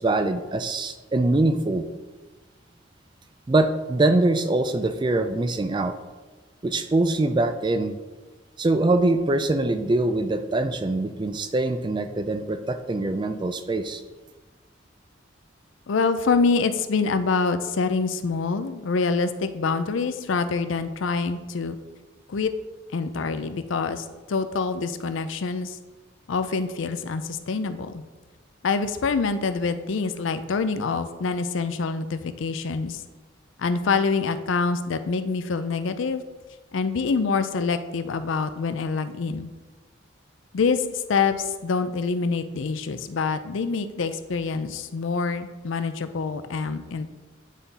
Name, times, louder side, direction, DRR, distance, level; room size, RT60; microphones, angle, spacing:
voice 1, 0.0-1.8 3.5-5.9 6.6-8.0 8.6-14.0, right 2 dB, 25° right, 9 dB, 0.3 m, -23 dB
voice 2, 15.9-21.8 22.3-22.5 22.9-25.8 26.3-28.0 28.6-33.0 33.6-36.2 36.7-39.5 40.5-47.1, left 4 dB, 75° left, 11 dB, 0.5 m, -26 dB
9.1 x 3.8 x 4.1 m, 1.2 s
head